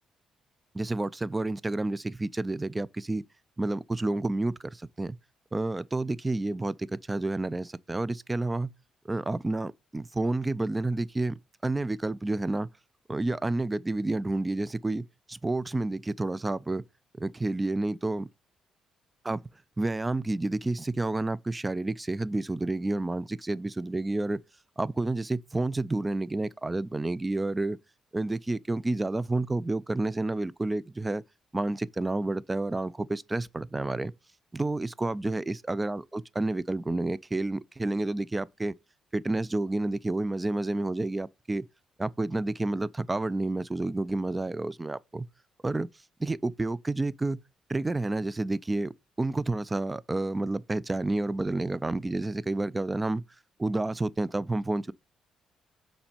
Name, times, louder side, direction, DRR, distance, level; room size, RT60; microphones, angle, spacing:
voice 1, 0.7-3.2 3.6-5.2 5.5-8.7 9.0-12.7 13.1-16.8 17.2-18.3 19.2-19.4 19.8-24.4 24.8-27.8 28.1-31.2 31.5-34.1 34.5-38.7 39.1-41.7 42.0-45.3 45.6-45.9 46.2-47.4 47.7-53.2 53.6-54.9, right 2 dB, 20° right, 0.4 m, -30 dB
5.9 x 4.2 x 5.0 m
cardioid pair, 90°, 0 cm